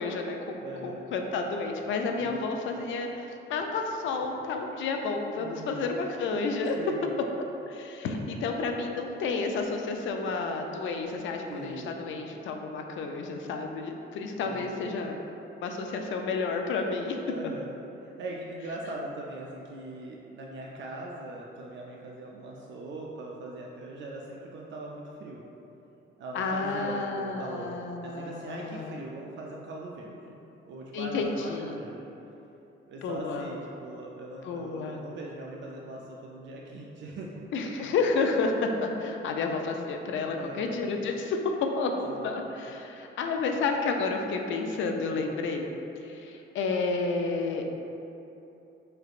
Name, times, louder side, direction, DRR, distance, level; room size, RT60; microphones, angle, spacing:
voice 1, 0.0-6.8 7.7-15.1 15.6-17.2 26.3-29.0 30.9-31.8 33.0-33.5 34.4-35.0 37.5-45.7 46.0-47.7, left 4 dB, 65° left, 3 dB, 0.4 m, -31 dB
voice 2, 0.6-1.1 2.2-2.5 5.4-5.9 6.7-7.2 11.5-12.0 14.4-14.7 17.3-25.4 26.2-27.8 28.0-30.4 30.6-32.0 32.9-37.4 40.3-40.8 42.0-42.3 44.9-45.3, right 2 dB, 60° right, -2 dB, 0.4 m, -41 dB
4.8 x 3.3 x 2.4 m, 3.0 s
cardioid pair, 160°, 21 cm